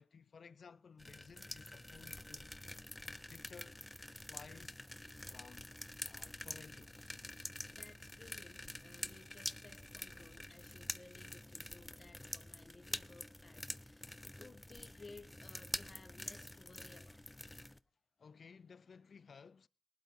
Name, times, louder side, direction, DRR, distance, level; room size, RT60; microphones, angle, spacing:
voice 1, 0.0-2.5 3.3-4.8 5.3-5.7 6.0-7.1 18.2-19.7, left 5 dB, 65° left, 0.6 m, -57 dB
sound 1, 1.0-17.8, left 1 dB, 15° left, 0.8 m, -47 dB
voice 2, 7.7-17.2, left 3 dB, 40° left, 2.9 m, -59 dB
19.0 x 12.0 x 3.7 m
cardioid pair, 55°, 0 cm